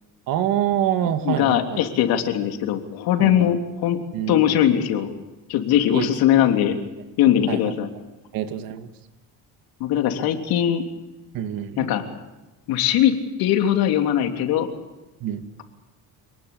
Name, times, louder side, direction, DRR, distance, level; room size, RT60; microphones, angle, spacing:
voice 1, 0.3-1.8 3.2-3.5 4.1-4.6 5.9-6.1 7.5-7.6 8.3-8.9 11.3-11.9 15.2-15.4, right 11 dB, 65° right, 8 dB, 2.4 m, -26 dB
voice 2, 1.2-4.0 4.3-5.1 5.5-6.7 7.2-7.9 9.8-10.8 11.8-12.0 12.7-13.1 13.4-14.7, left 11 dB, 80° left, 4 dB, 3.4 m, -20 dB
27.5 x 19.5 x 8.7 m, 1.1 s
cardioid pair, 140°, 36 cm